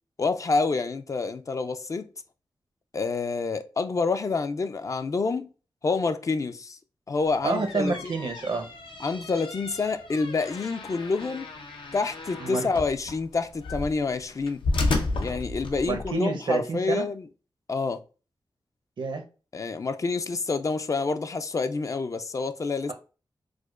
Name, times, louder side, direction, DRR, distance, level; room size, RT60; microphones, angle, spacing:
voice 1, 0.2-2.1 2.9-5.5 5.8-6.8 7.1-8.1 9.0-11.5 11.9-14.6 15.2-17.3 17.7-18.0 19.5-22.9, left 4 dB, 40° left, 0.3 m, -28 dB
sound 1, 7.3-16.1, left 2 dB, 85° left, 0.6 m, -33 dB
voice 2, 7.4-8.7 12.4-12.7 15.9-17.1 19.0-19.2, right 4 dB, 75° right, 0.7 m, -28 dB
4.8 x 2.1 x 2.3 m
wide cardioid pair, 100°, 8 cm